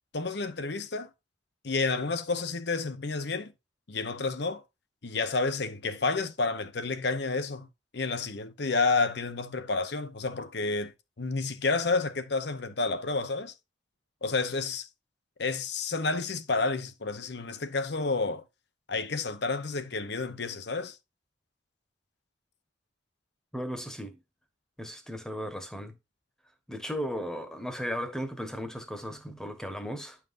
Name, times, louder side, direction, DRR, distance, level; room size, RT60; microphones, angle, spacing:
voice 1, 0.1-1.1 1.6-3.5 3.9-4.6 5.0-7.7 7.9-10.9 11.2-13.5 14.2-14.9 15.4-18.4 18.9-21.0, left 3 dB, 55° left, 0.8 m, -30 dB
voice 2, 23.5-24.2 24.8-26.0 26.7-30.2, equal, 5° left, 1.2 m, -36 dB
10.5 x 5.8 x 2.6 m
head